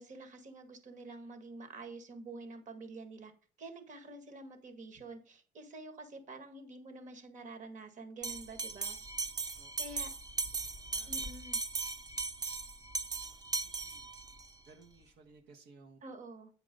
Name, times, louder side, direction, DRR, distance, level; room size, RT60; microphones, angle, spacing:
voice 1, 0.0-3.3 3.6-9.0 9.8-10.1 11.1-11.6 16.0-16.5, right 2 dB, 45° right, 7 dB, 2.0 m, -48 dB
Bell, 8.2-14.5, right 4 dB, 25° right, 0.8 m, -38 dB
voice 2, 13.6-14.1 14.7-16.0, right 4 dB, 85° right, 2 dB, 1.4 m, -58 dB
9.1 x 4.8 x 5.3 m, 0.39 s
cardioid pair, 110°, 17 cm